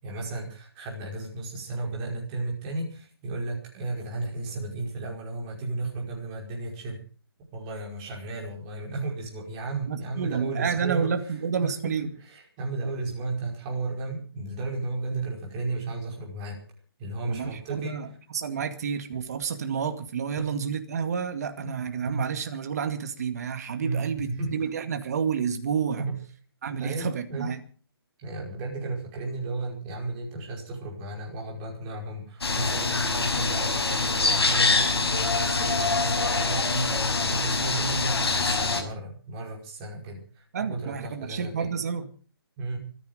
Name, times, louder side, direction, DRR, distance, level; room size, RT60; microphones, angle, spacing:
voice 1, 0.0-7.0 7.5-11.3 12.2-16.6 17.0-18.0 20.4-20.5 21.6-21.7 22.0-22.3 23.8-24.6 26.0-26.2 26.8-27.5 28.2-41.7 42.6-42.8, right 2 dB, 20° right, -1 dB, 5.4 m, -34 dB
voice 2, 9.9-12.1 17.3-26.1 26.6-27.6 40.5-42.1, right 6 dB, 40° right, 8 dB, 2.1 m, -30 dB
sound 1, 32.4-38.8, left 3 dB, 80° left, 5.6 m, -25 dB
25.5 x 10.5 x 5.2 m, 0.40 s
hypercardioid pair, 170°, 13 cm